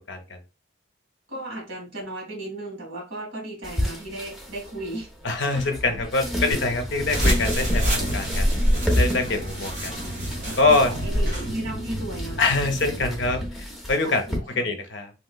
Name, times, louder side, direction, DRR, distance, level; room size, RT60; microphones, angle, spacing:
voice 1, 0.1-0.4 5.2-7.8 8.1-8.5 8.9-10.0 10.6-10.9 12.4-14.2 14.6-15.1, left 3 dB, 60° left, 6 dB, 0.6 m, -24 dB
voice 2, 1.3-5.1 8.3-8.4 9.3-9.4 10.4-12.5 14.0-14.7, right 1 dB, 90° right, -1 dB, 1.7 m, -35 dB
sound 1, 3.6-14.4, left 1 dB, ahead, 0.6 m, -31 dB
sound 2, 6.5-13.5, right 1 dB, 15° right, 1.8 m, -34 dB
sound 3, 7.0-11.5, equal, 45° right, 1.6 m, -26 dB
3.1 x 2.9 x 2.2 m, 0.30 s
head